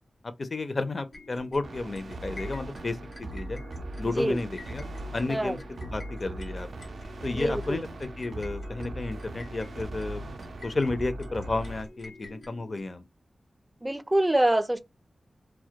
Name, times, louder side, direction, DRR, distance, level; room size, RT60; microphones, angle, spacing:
voice 1, 0.2-3.0 3.3-3.6 4.0-4.9 5.1-6.7 7.2-10.3 10.6-13.0, left 3 dB, 55° left, 0.4 m, -32 dB
sound 1, 1.1-12.8, left 2 dB, 90° left, 1.0 m, -48 dB
sound 2, 1.6-11.8, right 1 dB, 85° right, 0.3 m, -39 dB
voice 2, 7.3-7.8 13.8-14.8, right 1 dB, 15° right, 0.4 m, -25 dB
2.2 x 2.1 x 2.7 m
cardioid pair, 50°, 0 cm